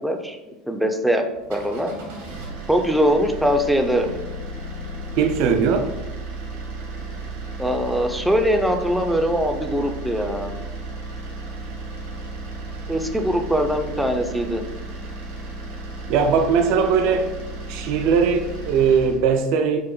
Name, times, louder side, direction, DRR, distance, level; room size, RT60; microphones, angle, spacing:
voice 1, 0.0-1.2 1.5-1.9 2.7-4.1 7.6-10.5 12.9-14.6, equal, ahead, 4 dB, 0.5 m, -22 dB
sound 1, 1.3-19.2, right 2 dB, 80° right, 1.0 m, -34 dB
voice 2, 5.2-5.9 16.1-17.3 17.7-19.8, right 6 dB, 60° right, 6 dB, 0.4 m, -19 dB
4.7 x 2.1 x 3.0 m, 1.0 s
hypercardioid pair, 75°, 0 cm